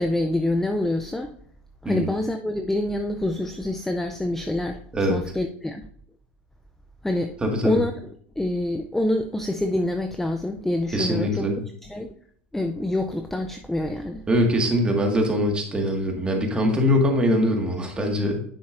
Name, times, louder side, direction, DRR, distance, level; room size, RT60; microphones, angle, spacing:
voice 1, 0.0-1.3 1.8-4.8 5.1-5.9 7.0-7.3 7.6-7.9 8.4-11.5 11.8-12.1 12.5-14.2, left 1 dB, 5° left, 5 dB, 0.5 m, -26 dB
voice 2, 7.4-7.8 10.9-11.6 14.3-18.4, equal, 15° right, 2 dB, 1.9 m, -22 dB
9.6 x 7.0 x 2.6 m, 0.63 s
supercardioid pair, 120°, 6 cm